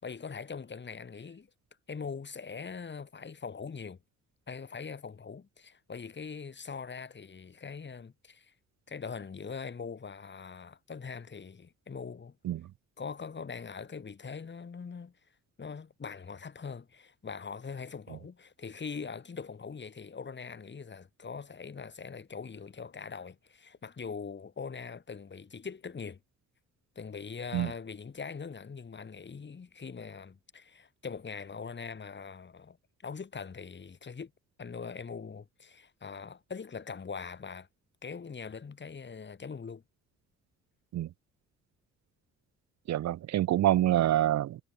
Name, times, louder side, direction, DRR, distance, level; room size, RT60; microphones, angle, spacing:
voice 1, 0.0-1.5 1.9-4.0 4.5-8.5 8.9-12.4 13.0-15.2 15.6-26.2 26.9-32.8 33.0-34.3 34.6-37.7 38.0-39.8, left 5 dB, 35° left, 6.2 m, -42 dB
voice 2, 42.9-44.6, right 13 dB, 65° right, 0.8 m, -26 dB
cardioid pair, 90°, 30 cm